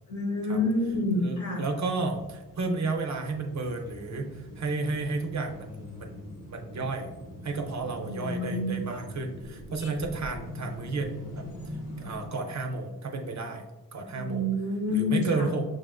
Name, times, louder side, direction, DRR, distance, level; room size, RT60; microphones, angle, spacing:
voice 1, 0.1-1.6 8.0-8.8 14.1-15.5, left 2 dB, 50° left, 1 dB, 0.9 m, -28 dB
voice 2, 1.1-7.1 7.4-11.5 12.0-13.6 13.9-14.5 14.9-15.6, right 3 dB, 50° right, 3 dB, 0.5 m, -32 dB
sound 1, 1.6-12.3, equal, 80° left, 1.2 m, -43 dB
6.2 x 2.4 x 2.2 m, 1.1 s
wide cardioid pair, 155°, 37 cm